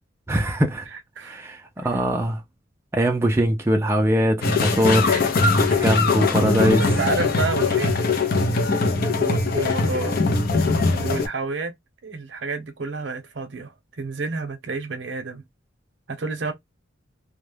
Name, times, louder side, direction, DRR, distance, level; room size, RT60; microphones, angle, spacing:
voice 1, 0.3-0.9 1.2-2.4 2.9-5.3 5.5-6.8, right 1 dB, 15° right, 0.3 m, -22 dB
sound 1, 4.4-11.3, left 3 dB, 50° left, 0.5 m, -21 dB
voice 2, 6.7-8.1 9.2-10.2 11.0-11.7 12.0-15.4 16.1-16.5, right 4 dB, 65° right, 0.7 m, -29 dB
2.2 x 2.0 x 3.2 m
head